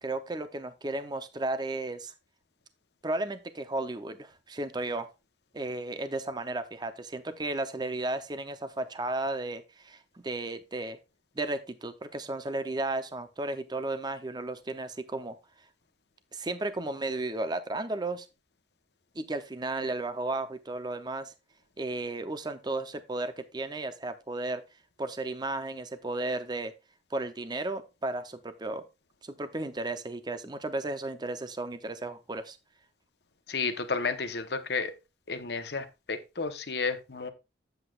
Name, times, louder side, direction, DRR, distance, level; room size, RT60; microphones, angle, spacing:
voice 1, 0.0-2.1 3.0-5.1 5.5-11.0 11.4-15.4 16.3-18.3 19.2-21.3 21.8-24.6 25.0-26.7 27.1-28.8 29.2-32.6, right 2 dB, 25° right, 10 dB, 0.7 m, -34 dB
voice 2, 33.5-34.9 35.3-37.3, left 4 dB, 65° left, 8 dB, 1.0 m, -32 dB
9.8 x 7.9 x 2.4 m, 0.26 s
head